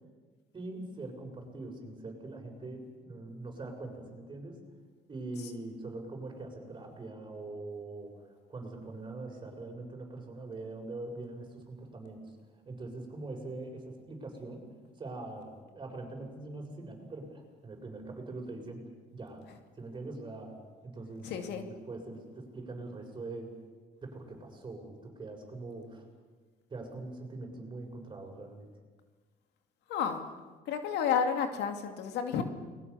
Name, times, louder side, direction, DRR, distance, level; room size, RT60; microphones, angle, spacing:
voice 1, 0.5-4.6 5.1-8.2 8.5-12.2 12.6-14.7 15.0-19.4 19.8-20.6 20.8-23.5 24.0-26.0 26.7-28.7, right 2 dB, 25° right, 2 dB, 6.7 m, -43 dB
voice 2, 21.2-21.6 29.9-30.2 30.7-32.4, left 7 dB, 85° left, 6 dB, 2.6 m, -31 dB
30.0 x 21.5 x 7.0 m, 1.4 s
cardioid pair, 110°, 17 cm